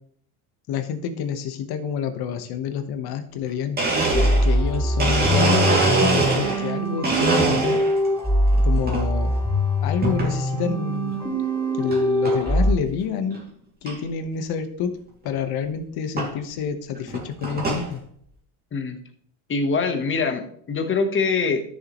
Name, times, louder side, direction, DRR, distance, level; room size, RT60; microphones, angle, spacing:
voice 1, 0.7-3.8 4.4-7.8 8.6-9.4 9.8-11.2 11.7-13.4 13.8-15.0 15.2-18.0, left 7 dB, 55° left, 8 dB, 1.3 m, -28 dB
Domestic sounds home sounds, 3.4-3.5 3.8-6.7 7.0-8.1 8.5-9.0 10.0-10.3 10.9-11.0 11.9-12.0 12.3-12.6 13.0-13.1 13.3-13.4 13.9-14.0 15.3-15.4 16.2-16.3 17.0-17.9, right 3 dB, 20° right, 2.6 m, -23 dB
sound 1, 4.1-12.7, equal, 5° left, 2.4 m, -22 dB
voice 2, 19.5-20.4 20.7-21.6, left 4 dB, 25° left, 7 dB, 1.2 m, -23 dB
12.5 x 6.8 x 3.1 m, 0.64 s
cardioid pair, 135°, 45 cm